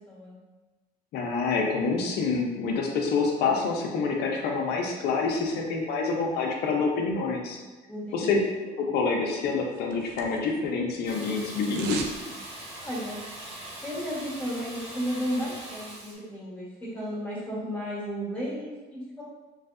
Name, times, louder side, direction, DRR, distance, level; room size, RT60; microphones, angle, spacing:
voice 1, 1.1-7.6 8.1-8.4 8.8-12.1, left 4 dB, 75° left, 1 dB, 0.6 m, -27 dB
voice 2, 7.9-8.5 12.8-13.2 13.8-19.2, equal, 10° left, -8 dB, 1.4 m, -34 dB
sound 1, 9.4-10.7 10.9-12.2 12.5-12.6, right 5 dB, 85° right, 0.4 m, -39 dB
Water tap faucet / Bathtub (filling or washing), 11.0-16.1, right 1 dB, 40° right, 1.1 m, -41 dB
3.2 x 2.6 x 2.5 m, 1.2 s
cardioid pair, 110°, 17 cm